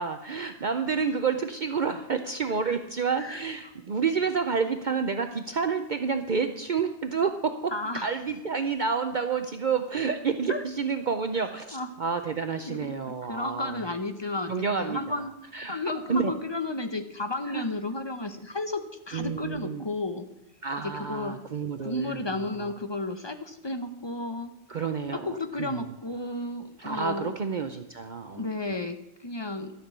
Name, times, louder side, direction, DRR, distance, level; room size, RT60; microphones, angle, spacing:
voice 1, 0.0-7.7 8.0-13.8 14.5-15.2 15.5-15.8 16.1-16.3 17.5-17.6 19.1-19.8 20.6-22.2 22.6-22.7 24.7-25.8 26.8-28.5, right 5 dB, 50° right, 8 dB, 0.7 m, -29 dB
voice 2, 7.7-8.1 10.5-10.6 11.7-11.9 12.7-12.9 13.3-15.3 15.7-20.3 20.8-21.4 21.8-24.5 25.1-27.4 28.3-29.7, left 2 dB, 25° left, 8 dB, 0.8 m, -33 dB
13.0 x 6.0 x 8.0 m, 0.90 s
omnidirectional pair, 1.2 m